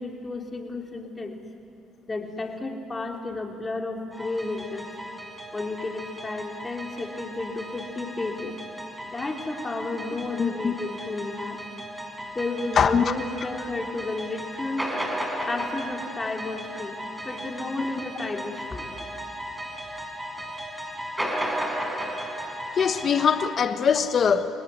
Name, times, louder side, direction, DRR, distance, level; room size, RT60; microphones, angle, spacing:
voice 1, 0.0-1.4 2.1-4.9 5.5-8.6 9.0-11.6 12.3-14.9 15.5-17.0 17.2-19.1, left 3 dB, 25° left, 2 dB, 3.9 m, -32 dB
sound 1, 4.1-23.5, equal, 5° right, 5.2 m, -35 dB
voice 2, 10.4-10.7 12.8-13.0 22.7-24.5, left 7 dB, 50° left, 9 dB, 1.3 m, -22 dB
29.5 x 18.5 x 9.8 m, 3.0 s
supercardioid pair, 65°, 0 cm